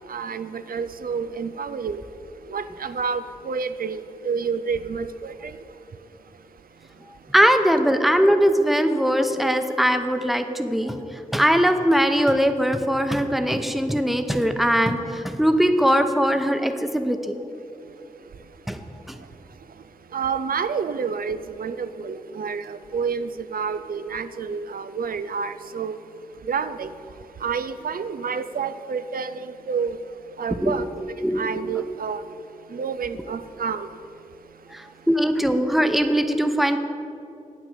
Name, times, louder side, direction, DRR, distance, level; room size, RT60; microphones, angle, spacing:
voice 1, 0.1-2.0 2.5-5.3 20.1-25.9 26.5-26.9 27.4-30.0 30.4-30.9 31.4-32.2 32.7-33.9, right 6 dB, 90° right, 0.4 m, -29 dB
voice 2, 7.3-17.3 18.7-18.8 30.6-30.7 31.2-31.4 34.7-36.8, equal, ahead, 0.7 m, -21 dB
9.0 x 6.2 x 8.1 m
wide cardioid pair, 65°, 15 cm